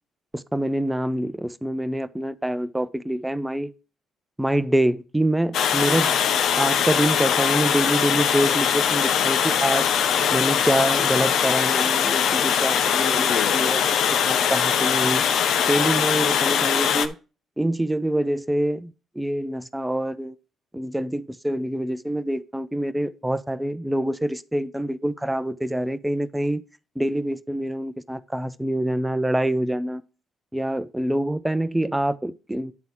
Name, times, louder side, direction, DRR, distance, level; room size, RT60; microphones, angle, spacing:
voice 1, 0.3-3.7 4.4-6.1 6.5-9.9 10.3-17.2 17.6-20.4 20.7-26.6 27.0-30.0 30.5-32.7, right 1 dB, 10° right, 0.7 m, -26 dB
Water, 5.5-17.1, left 8 dB, 75° left, 0.7 m, -21 dB
10.5 x 4.0 x 4.6 m
supercardioid pair, 60°, 0 cm